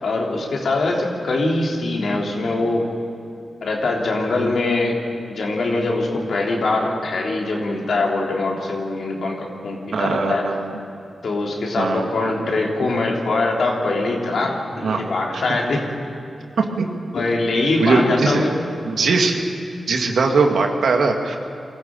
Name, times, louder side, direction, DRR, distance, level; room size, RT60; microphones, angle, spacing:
voice 1, 0.0-2.8 3.6-5.0 5.3-10.6 11.2-15.8 17.1-18.5, left 2 dB, 75° left, -1 dB, 3.5 m, -22 dB
voice 2, 9.9-10.8 11.8-12.1 14.8-15.1 16.6-16.9 17.8-18.5 18.9-19.4 19.9-21.4, right 4 dB, 75° right, 3 dB, 2.2 m, -20 dB
22.0 x 14.0 x 8.9 m, 2.8 s
supercardioid pair, 40°, 0 cm